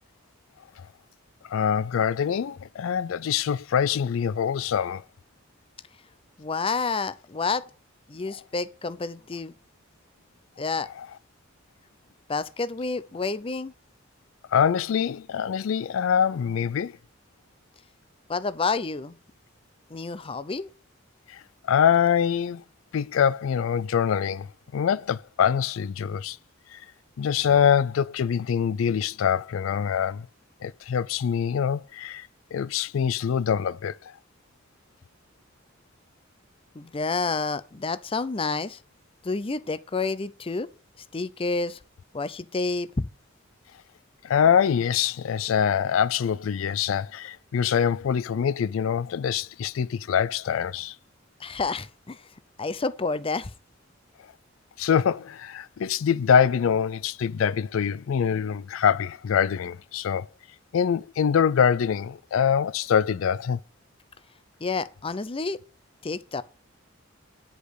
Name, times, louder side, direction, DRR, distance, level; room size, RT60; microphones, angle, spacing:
voice 1, 1.5-5.0 11.0-11.1 14.5-16.9 21.3-21.4 21.7-22.6 22.9-24.5 24.7-26.4 26.7-26.8 27.2-30.3 30.6-34.0 44.2-50.9 54.8-60.3 60.7-63.6, left 7 dB, 80° left, 0.4 m, -24 dB
voice 2, 6.4-7.6 8.1-9.5 10.6-10.9 12.3-13.7 18.3-19.2 19.9-20.7 36.7-38.8 39.2-40.7 41.1-41.8 42.1-43.1 51.4-52.2 52.6-53.5 64.6-65.6 66.0-66.4, left 4 dB, 30° left, 0.6 m, -29 dB
10.0 x 5.2 x 6.4 m
head